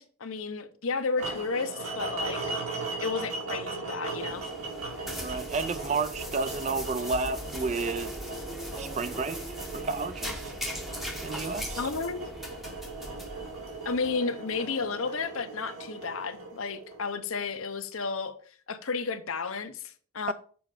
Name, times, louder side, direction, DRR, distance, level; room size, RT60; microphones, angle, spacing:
voice 1, 0.0-2.4 3.0-4.4 11.8-12.3 13.8-18.4 18.7-20.3, left 4 dB, 65° left, 0.7 m, -32 dB
sound 1, 1.2-17.3, right 3 dB, 70° right, 2.3 m, -38 dB
sound 2, 4.1-14.1, equal, ahead, 0.8 m, -40 dB
voice 2, 5.2-8.2 8.8-9.4 9.7-10.5 11.2-11.9 20.3-20.4, right 4 dB, 30° right, 0.4 m, -31 dB
7.0 x 4.4 x 4.9 m
head